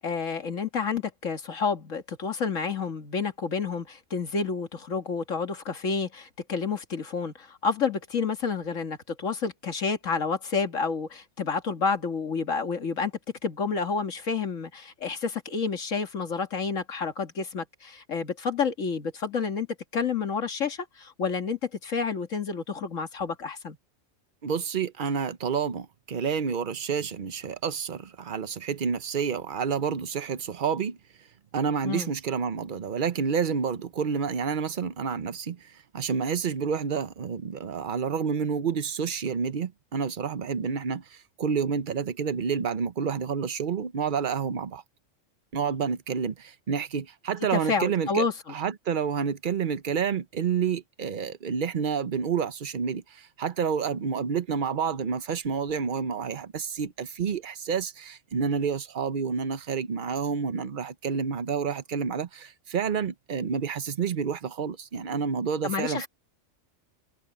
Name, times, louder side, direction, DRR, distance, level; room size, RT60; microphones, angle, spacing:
voice 1, 0.0-13.1 13.4-19.7 19.9-23.8 31.8-32.1 47.5-48.6 65.6-66.1, left 5 dB, 80° left, 2.2 m, -29 dB
voice 2, 24.4-31.0 31.5-44.8 45.5-66.1, right 6 dB, 45° right, 1.0 m, -29 dB
omnidirectional pair, 1.3 m